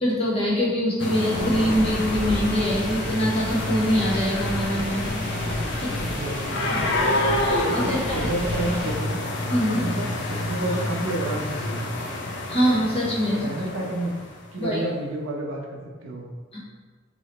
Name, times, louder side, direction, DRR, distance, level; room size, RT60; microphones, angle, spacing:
voice 1, 0.0-5.0 7.4-8.3 9.5-9.8 12.5-13.5 14.6-14.8 16.5-16.6, equal, 30° left, -6 dB, 0.9 m, -24 dB
sound 1, 1.0-14.5, left 2 dB, 60° left, 0.5 m, -28 dB
sound 2, 1.3-8.9, equal, 5° left, 0.6 m, -33 dB
voice 2, 5.3-5.6 6.0-7.1 7.8-9.2 9.7-11.9 13.4-14.1 14.5-16.3, right 1 dB, 70° right, 0 dB, 0.6 m, -30 dB
3.1 x 2.8 x 4.0 m, 1.4 s
head